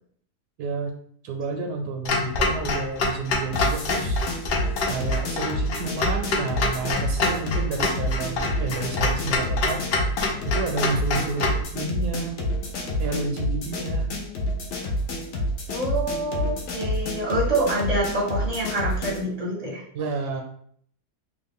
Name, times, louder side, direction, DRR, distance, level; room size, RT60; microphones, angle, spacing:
voice 1, 0.6-0.9 1.2-4.2 4.9-9.9 10.4-12.4 13.0-14.1 19.9-20.4, right 4 dB, 80° right, 3 dB, 1.1 m, -30 dB
Clock, 2.0-11.6, left 3 dB, 85° left, 0.5 m, -27 dB
sound 1, 3.5-19.3, left 1 dB, 60° left, 0.8 m, -28 dB
voice 2, 15.7-19.8, right 1 dB, 40° right, -4 dB, 0.6 m, -26 dB
2.9 x 2.4 x 3.5 m, 0.63 s
omnidirectional pair, 1.7 m